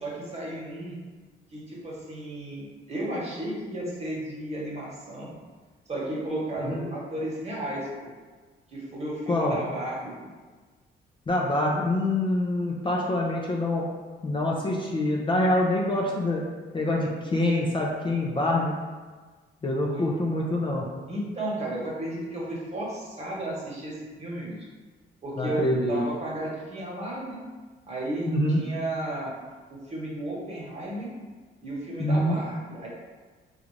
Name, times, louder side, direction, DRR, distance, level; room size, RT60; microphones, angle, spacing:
voice 1, 0.0-1.0 1.5-5.3 5.9-8.1 8.7-10.3 19.9-20.1 21.1-24.6 25.2-27.4 27.9-28.3 28.6-29.3 29.7-31.1 31.6-32.9, right 1 dB, 35° right, -5 dB, 1.2 m, -33 dB
voice 2, 9.3-9.6 11.3-13.8 14.2-16.4 16.7-18.7 19.6-20.9 25.4-26.0 28.3-28.6 32.0-32.4, left 1 dB, 25° left, -2 dB, 0.5 m, -25 dB
3.8 x 2.4 x 3.1 m, 1.4 s
cardioid pair, 90°, 20 cm